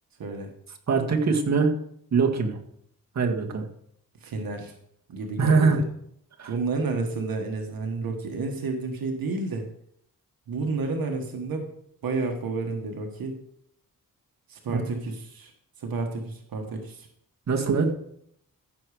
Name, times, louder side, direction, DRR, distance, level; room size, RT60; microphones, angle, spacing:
voice 1, 0.2-0.5 4.2-4.7 5.1-5.8 6.5-9.7 10.5-11.7 12.0-13.4 14.5-15.5 15.8-17.1, right 3 dB, 80° right, 3 dB, 1.4 m, -30 dB
voice 2, 0.9-1.7 2.1-2.6 3.2-3.6 5.4-5.8 6.4-6.5 14.7-14.8 17.5-17.9, right 4 dB, 50° right, 1 dB, 1.8 m, -22 dB
15.0 x 6.3 x 4.9 m, 0.71 s
wide cardioid pair, 125°, 34 cm